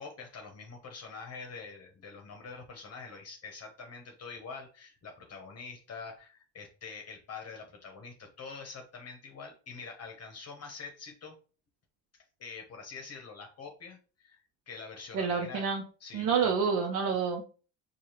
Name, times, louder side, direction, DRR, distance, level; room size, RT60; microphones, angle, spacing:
voice 1, 0.0-11.4 12.4-15.7 16.0-16.5, left 5 dB, 45° left, 2 dB, 0.9 m, -45 dB
voice 2, 15.1-15.8 16.1-17.5, right 6 dB, 60° right, 1 dB, 0.8 m, -28 dB
4.6 x 2.4 x 2.9 m, 0.37 s
supercardioid pair, 85°, 35 cm